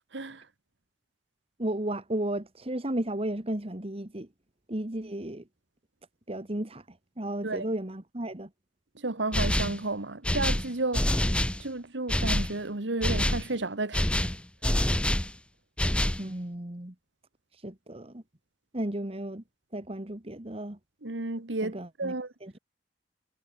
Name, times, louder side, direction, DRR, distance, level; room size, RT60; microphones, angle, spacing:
voice 1, 0.1-0.5 7.4-7.7 9.0-11.3 11.6-14.3 21.0-22.3, right 2 dB, 90° right, 1.7 m, -32 dB
voice 2, 1.6-4.3 4.7-5.4 6.3-8.5 16.2-17.0 17.5-18.2 18.7-19.4 19.7-20.8 21.6-22.1 22.4-22.5, right 1 dB, 35° right, 1.8 m, -34 dB
sound 1, 9.3-9.8 10.2-11.6 12.1-12.5 13.0-13.5 13.9-15.3 15.8-16.2, left 1 dB, 5° left, 0.8 m, -26 dB
head